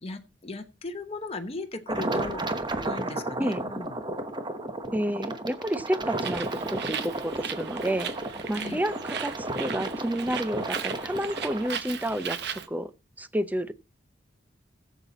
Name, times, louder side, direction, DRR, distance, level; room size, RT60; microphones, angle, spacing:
voice 1, 0.0-2.4 2.8-4.0 4.9-5.2 8.6-8.8, left 3 dB, 35° left, 0.9 m, -38 dB
sound 1, 1.9-11.7, right 2 dB, 25° right, 1.0 m, -33 dB
voice 2, 4.9-8.1 8.5-12.9 13.2-13.7, right 1 dB, 10° right, 0.6 m, -30 dB
Bird, 6.1-12.7, right 8 dB, 65° right, 1.0 m, -37 dB
16.0 x 7.4 x 4.1 m
head